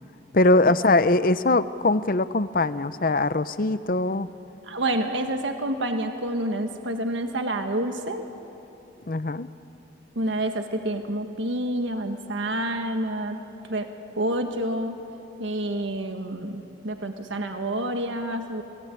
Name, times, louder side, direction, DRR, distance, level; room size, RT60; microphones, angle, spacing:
voice 1, 0.3-4.3 9.1-9.5, left 2 dB, 50° left, 14 dB, 0.7 m, -21 dB
voice 2, 4.7-8.2 10.1-13.4 13.7-13.9 14.2-15.0 15.4-18.6, right 1 dB, 85° right, 5 dB, 1.6 m, -28 dB
29.0 x 20.0 x 9.3 m, 2.9 s
head